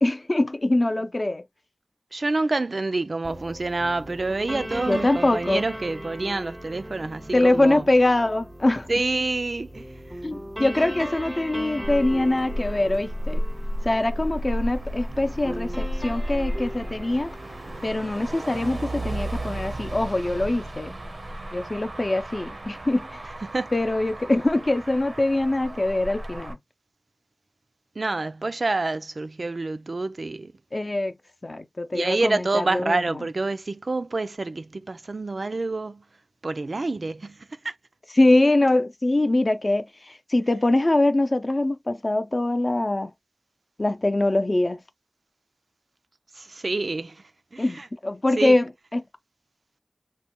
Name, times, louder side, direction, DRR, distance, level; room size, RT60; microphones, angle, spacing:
voice 1, 0.0-1.4 4.9-5.6 7.3-8.9 10.2-13.4 13.8-17.3 17.8-21.0 21.5-23.2 23.7-26.6 30.7-31.2 31.4-33.3 38.2-43.1 43.8-44.8 47.6-49.0, left 2 dB, 45° left, 0.5 m, -23 dB
voice 2, 2.1-7.8 8.9-9.8 23.4-23.7 28.0-30.5 31.9-36.0 36.4-37.4 37.6-37.8 46.4-47.2 47.5-47.9 48.4-48.6, right 3 dB, 70° right, 0.3 m, -27 dB
sound 1, 3.2-17.9, equal, 5° right, 0.5 m, -38 dB
Motor vehicle (road), 11.8-26.5, equal, 90° right, 0.7 m, -33 dB
3.1 x 2.2 x 2.9 m
wide cardioid pair, 55°, 0 cm